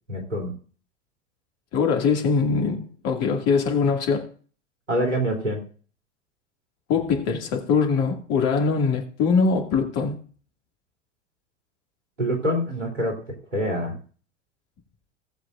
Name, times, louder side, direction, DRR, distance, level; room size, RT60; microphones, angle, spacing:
voice 1, 0.1-0.5 4.9-5.6 12.2-13.2 13.5-14.0, equal, 80° right, 3.2 m, -25 dB
voice 2, 1.7-4.3 6.9-10.2, left 5 dB, 45° left, 2.3 m, -22 dB
18.0 x 7.5 x 2.5 m
figure-of-eight pair, 85°, 36 cm